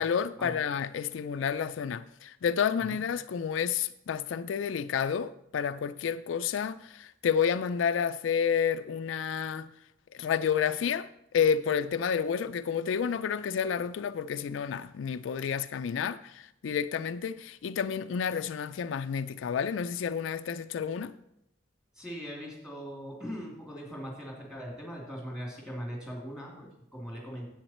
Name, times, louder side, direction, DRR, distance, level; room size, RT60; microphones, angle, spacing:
voice 1, 0.0-9.7 10.1-11.1 11.3-21.1, left 7 dB, 80° left, 0.4 m, -30 dB
voice 2, 22.0-27.5, equal, 5° right, 2.6 m, -40 dB
10.0 x 8.0 x 4.3 m
head